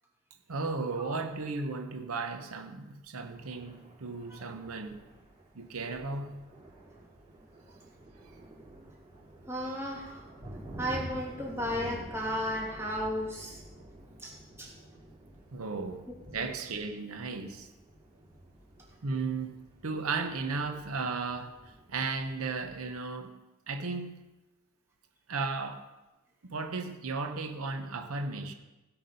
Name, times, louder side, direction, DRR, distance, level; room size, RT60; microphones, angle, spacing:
voice 1, 0.5-5.1 5.5-6.5 8.2-8.3 15.5-17.7 19.0-23.4 23.7-24.3 25.3-25.9 26.4-28.5, right 4 dB, 85° right, 6 dB, 0.8 m, -35 dB
Thunder, 3.3-23.0, right 1 dB, 35° right, 4.9 m, -49 dB
voice 2, 9.5-10.2 10.8-13.6 14.2-14.3 14.6-14.7 16.4-16.5, equal, 10° right, -3 dB, 2.7 m, -34 dB
16.5 x 5.9 x 5.4 m, 1.0 s
head